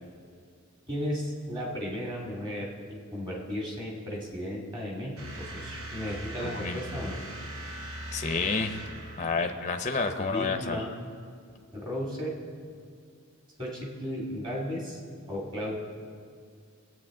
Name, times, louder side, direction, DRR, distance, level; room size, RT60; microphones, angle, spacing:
voice 1, 0.9-7.2 9.3-9.5 10.2-10.9 11.7-12.3 13.6-15.0 15.3-15.8, equal, 20° right, -2 dB, 2.2 m, -35 dB
sound 1, 5.2-9.9, right 1 dB, 80° right, 1.1 m, -40 dB
voice 2, 6.4-6.8 8.1-8.8 9.2-10.8, left 4 dB, 35° left, 7 dB, 0.6 m, -29 dB
19.5 x 8.5 x 3.7 m, 2.2 s
head